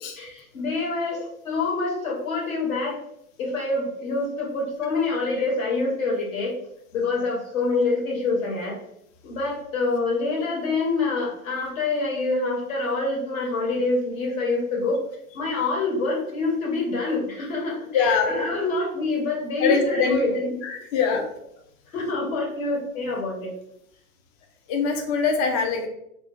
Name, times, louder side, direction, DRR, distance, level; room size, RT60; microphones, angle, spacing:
voice 1, 0.2-1.2 1.4-3.0 3.4-6.5 6.9-8.8 9.2-15.0 15.3-20.6 21.0-21.2 21.9-23.5, left 3 dB, 65° left, -2 dB, 1.3 m, -26 dB
voice 2, 17.9-18.3 19.6-20.2 20.6-21.2 24.7-25.9, left 5 dB, 30° left, 3 dB, 0.4 m, -23 dB
2.4 x 2.1 x 3.6 m, 0.75 s
figure-of-eight pair, 105°, 44 cm